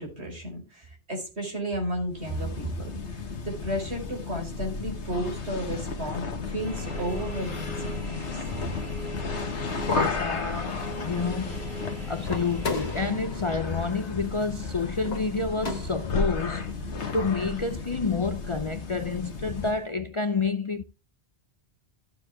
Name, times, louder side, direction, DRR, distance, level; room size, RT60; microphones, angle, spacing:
voice 1, 0.0-8.4, right 1 dB, 75° right, 4.5 m, -33 dB
sound 1, 2.1-19.8, left 4 dB, 90° left, 1.7 m, -33 dB
sound 2, 6.6-13.1, right 2 dB, 45° right, 2.3 m, -40 dB
voice 2, 9.9-11.7 12.1-16.7 17.1-20.8, left 4 dB, 40° left, 0.5 m, -29 dB
sound 3, 12.2-16.3, left 3 dB, 65° left, 2.2 m, -37 dB
14.5 x 7.1 x 3.4 m
omnidirectional pair, 1.1 m